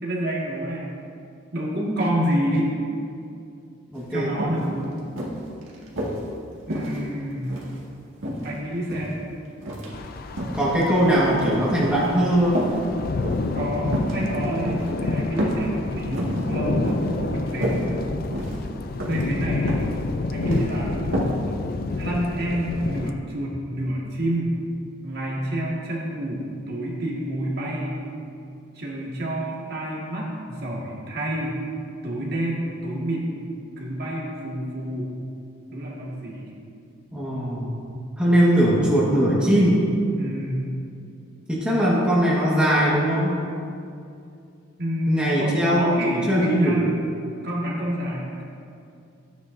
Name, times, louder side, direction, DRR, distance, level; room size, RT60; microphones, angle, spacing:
voice 1, 0.0-0.9 1.5-2.7 4.1-5.0 6.7-7.6 8.4-9.2 13.5-17.9 19.1-19.8 20.3-21.1 22.0-24.6 25.0-28.0 28.7-31.6 32.0-33.3 33.8-35.1 35.7-36.6 40.2-40.7 44.8-46.9 47.4-48.4, right 1 dB, 55° right, -4 dB, 1.8 m, -28 dB
voice 2, 3.9-4.3 10.5-12.7 37.1-39.8 41.5-43.4 45.1-46.0 46.3-46.8, equal, 5° right, -7 dB, 1.5 m, -20 dB
sound 1, 4.0-4.1 4.4-4.6 5.2-6.2 6.7-7.8 8.2-9.1 9.6-9.9 10.3-10.6 11.1-12.1 12.5-12.8 13.2-13.5 13.9-14.2 14.7-14.9 15.4-15.7 16.0-16.4 16.9-17.1 17.4-17.8 18.3-18.7 19.0-19.2 19.7-20.0 20.2-20.6 21.1-21.4 21.7-21.8, equal, 85° right, 2.0 m, -29 dB
sound 2, 9.9-23.1, left 3 dB, 50° left, 0.4 m, -29 dB
13.5 x 9.1 x 2.7 m, 2.5 s
head